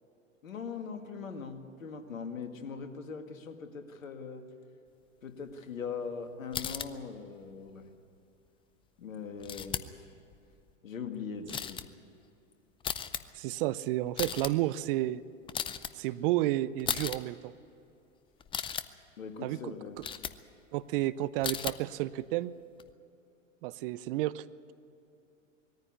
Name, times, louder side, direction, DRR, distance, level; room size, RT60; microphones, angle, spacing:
voice 1, 0.4-4.4 5.2-7.9 9.0-10.1 10.8-11.9 19.2-20.0, left 5 dB, 80° left, 6 dB, 2.1 m, -41 dB
sound 1, 6.5-6.9 9.4-10.0 10.3-10.7 11.5-11.8 12.8-13.2 14.1-14.5 15.5-15.9 16.8-17.2 18.4-18.8 20.0-20.4 21.4-21.8 22.8-22.9, left 8 dB, 15° left, 0.5 m, -35 dB
voice 2, 13.3-15.2 16.0-17.5 19.4-19.7 20.7-22.5 23.6-24.7, right 16 dB, 45° right, 17 dB, 0.6 m, -31 dB
20.5 x 14.5 x 9.7 m, 2.7 s
hypercardioid pair, 105°, 39 cm